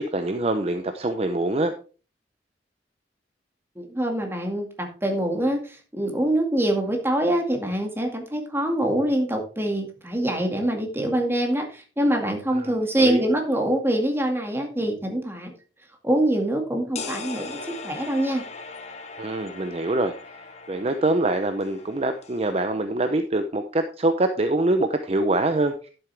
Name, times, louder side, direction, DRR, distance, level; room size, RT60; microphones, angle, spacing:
voice 1, 0.0-1.7 12.6-13.2 19.2-20.1 20.7-25.9, right 2 dB, 35° right, 8 dB, 0.7 m, -24 dB
voice 2, 3.8-15.5 16.0-18.4, right 1 dB, 15° right, 3 dB, 2.1 m, -24 dB
sound 1, 17.0-22.5, left 4 dB, 40° left, 1.1 m, -39 dB
11.5 x 7.8 x 3.4 m, 0.36 s
head